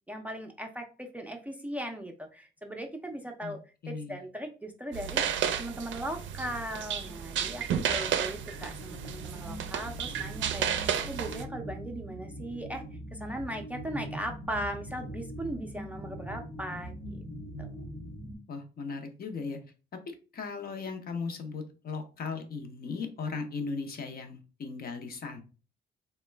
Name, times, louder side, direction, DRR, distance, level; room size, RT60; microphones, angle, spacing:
voice 1, 0.1-3.6 3.9-5.2 5.6-12.8 13.1-17.2 17.6-17.7, right 1 dB, 5° right, 3 dB, 0.4 m, -38 dB
voice 2, 3.8-4.2 18.5-19.6 20.1-25.4, left 4 dB, 50° left, 5 dB, 0.7 m, -37 dB
sound 1, 4.9-11.4, right 9 dB, 70° right, 0.4 m, -32 dB
sound 2, 6.2-18.4, equal, 80° left, 0.8 m, -43 dB
3.0 x 2.1 x 3.2 m, 0.35 s
cardioid pair, 90°, 20 cm